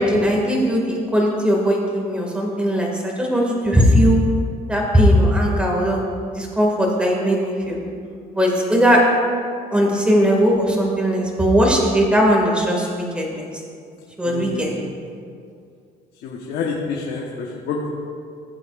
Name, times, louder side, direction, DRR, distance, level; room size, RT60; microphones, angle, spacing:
voice 1, 0.0-4.2 4.7-6.0 6.3-7.8 8.3-9.0 9.7-13.5 14.2-14.7, equal, 5° right, -2 dB, 2.0 m, -18 dB
voice 2, 14.3-14.6 16.2-17.2 17.7-17.9, left 5 dB, 75° left, -2 dB, 1.2 m, -27 dB
15.5 x 7.7 x 2.5 m, 2.3 s
cardioid pair, 110°, 17 cm